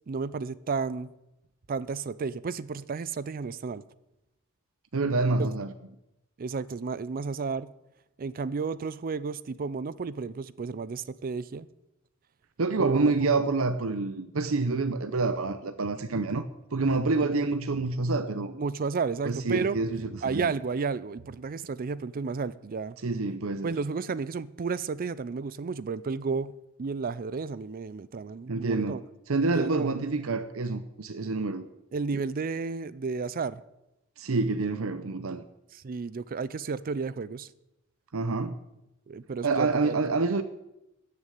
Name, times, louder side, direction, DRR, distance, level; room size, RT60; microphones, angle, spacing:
voice 1, 0.1-1.1 1.7-3.8 5.4-5.5 6.4-7.7 8.2-11.7 12.8-13.1 18.5-19.8 20.2-23.0 23.6-26.5 26.8-29.0 29.5-29.9 31.9-33.6 35.7-37.5 39.1-40.0, right 4 dB, 40° right, 0.4 m, -32 dB
voice 2, 4.9-5.7 12.6-16.4 16.7-18.5 19.2-20.5 23.0-23.8 28.5-29.0 29.3-31.7 34.2-35.4 38.1-38.6 39.4-40.4, right 3 dB, 70° right, 0.7 m, -27 dB
14.0 x 6.8 x 9.1 m
head